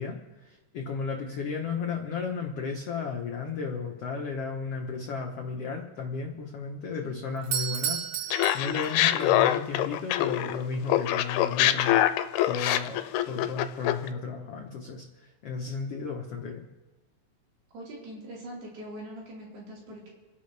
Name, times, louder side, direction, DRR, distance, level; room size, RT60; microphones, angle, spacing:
voice 1, 0.0-12.0 12.5-13.0 13.3-16.6, left 5 dB, 65° left, 2 dB, 1.5 m, -34 dB
Doorbell, 7.4-9.3, right 9 dB, 65° right, 2.4 m, -32 dB
Laughter, 8.3-10.6 10.9-14.1, left 13 dB, 90° left, 2.7 m, -24 dB
voice 2, 17.7-20.1, right 1 dB, 80° right, -5 dB, 6.6 m, -42 dB
29.5 x 11.0 x 3.4 m, 1.2 s
omnidirectional pair, 4.5 m